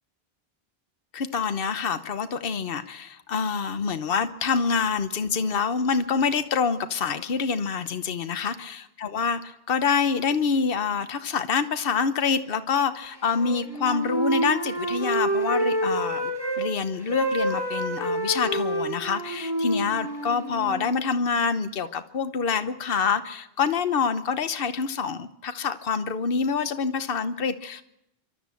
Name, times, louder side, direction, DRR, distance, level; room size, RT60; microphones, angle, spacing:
voice 1, 1.1-27.8, left 5 dB, 65° left, 10 dB, 1.2 m, -26 dB
Wind instrument woodwind instrument, 13.2-16.6 16.9-20.9, right 1 dB, 25° right, 7.6 m, -28 dB
27.0 x 12.5 x 8.3 m, 0.86 s
omnidirectional pair, 1.1 m